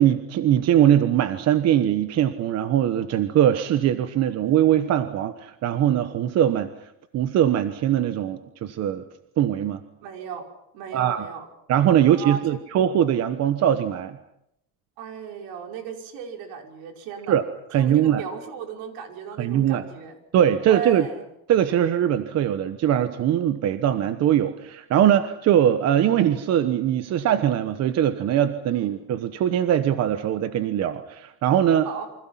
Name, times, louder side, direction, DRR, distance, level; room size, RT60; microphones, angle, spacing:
voice 1, 0.0-6.7 7.1-9.0 9.4-9.8 10.9-11.3 11.7-14.2 17.3-17.4 17.7-18.2 19.4-19.8 20.3-21.1 21.5-31.9, right 10 dB, 40° right, 10 dB, 1.2 m, -21 dB
voice 2, 10.0-10.4 10.7-11.5 12.1-12.6 15.0-17.4 17.7-20.2 20.7-21.2 28.7-28.9 31.8-32.1, right 7 dB, 70° right, 4 dB, 5.6 m, -36 dB
29.0 x 25.5 x 5.9 m, 0.80 s
cardioid pair, 170°, 37 cm